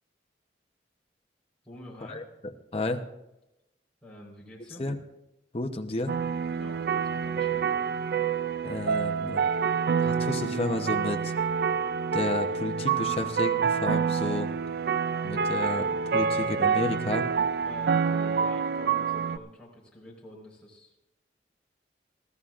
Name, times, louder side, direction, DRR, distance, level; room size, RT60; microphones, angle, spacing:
voice 1, 1.6-2.2 4.0-4.9 6.6-7.6 17.6-20.9, left 1 dB, 5° left, -4 dB, 4.2 m, -47 dB
voice 2, 2.7-3.0 4.8-5.0 5.5-6.2 8.6-9.4 10.0-11.3 12.1-14.5 15.2-17.3, left 2 dB, 35° left, 5 dB, 0.8 m, -31 dB
sound 1, 6.1-19.4, right 6 dB, 60° right, 0.4 m, -27 dB
23.0 x 14.5 x 2.5 m, 0.95 s
head